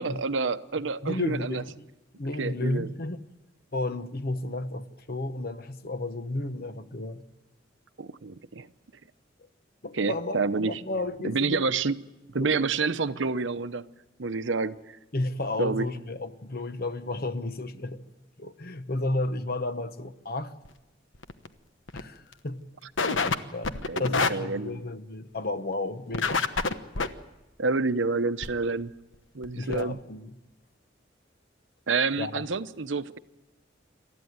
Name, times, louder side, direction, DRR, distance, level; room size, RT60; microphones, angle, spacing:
voice 1, 0.0-1.6 2.4-2.9 8.0-8.7 9.9-10.8 11.2-12.0 12.3-13.8 14.2-15.0 15.6-15.9 23.0-23.4 23.9-24.7 27.6-28.9 29.3-30.0 31.9-33.2, right 4 dB, 75° right, 0.8 m, -28 dB
voice 2, 1.0-1.7 2.2-3.2 3.7-7.2 9.8-11.6 12.4-12.6 15.1-18.0 18.4-20.5 21.9-22.6 23.5-26.5 29.6-30.3 32.2-32.5, left 2 dB, 50° left, 1.1 m, -32 dB
sound 1, 20.6-20.7 21.1-21.5 21.9-22.0 22.3-22.4 23.0-23.4 23.6-24.3 26.1-27.1 28.4-28.5 29.1-29.2 29.4-29.5 29.7-29.8, left 4 dB, 90° left, 1.2 m, -26 dB
27.5 x 14.0 x 9.4 m
head